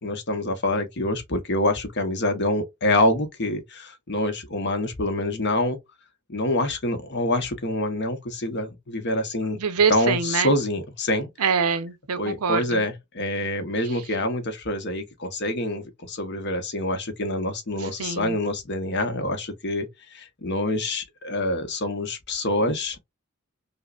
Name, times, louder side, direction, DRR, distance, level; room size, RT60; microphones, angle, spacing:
voice 1, 0.0-5.8 6.3-9.6 9.9-11.3 12.2-23.0, left 1 dB, 50° left, 0.9 m, -26 dB
voice 2, 9.6-10.5 11.4-12.8 18.0-18.3, right 6 dB, 90° right, 0.6 m, -24 dB
5.4 x 2.1 x 2.3 m
head